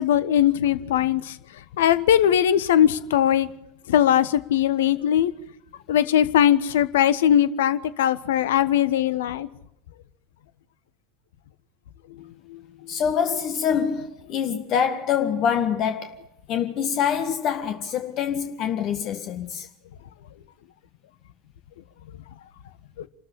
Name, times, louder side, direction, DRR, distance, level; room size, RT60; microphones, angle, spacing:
voice 1, 0.0-1.4 1.8-3.5 3.9-5.3 5.9-9.5 12.5-12.6 23.0-23.1, left 10 dB, 70° left, 1.2 m, -20 dB
voice 2, 12.9-19.7, left 8 dB, 45° left, 1.6 m, -25 dB
27.5 x 13.5 x 8.5 m
figure-of-eight pair, 75°, 0 cm